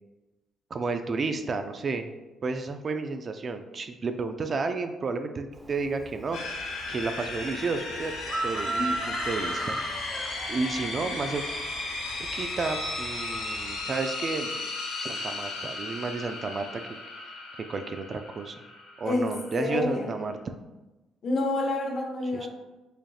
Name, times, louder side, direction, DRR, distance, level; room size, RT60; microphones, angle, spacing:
voice 1, 0.7-2.1 2.4-6.4 6.9-8.1 8.4-9.8 10.5-11.4 12.3-14.5 15.0-16.8 17.6-18.6 19.0-20.5 22.3-22.5, right 4 dB, 45° right, 7 dB, 0.3 m, -32 dB
Chicken rooster, 5.5-13.8, right 2 dB, 25° right, 0.8 m, -37 dB
sound 1, 6.3-20.3, left 3 dB, 85° left, 0.8 m, -35 dB
voice 2, 19.6-20.1 21.2-22.5, left 2 dB, 55° left, 1 dB, 0.8 m, -28 dB
5.0 x 2.8 x 2.3 m, 1.1 s
cardioid pair, 90°, 0 cm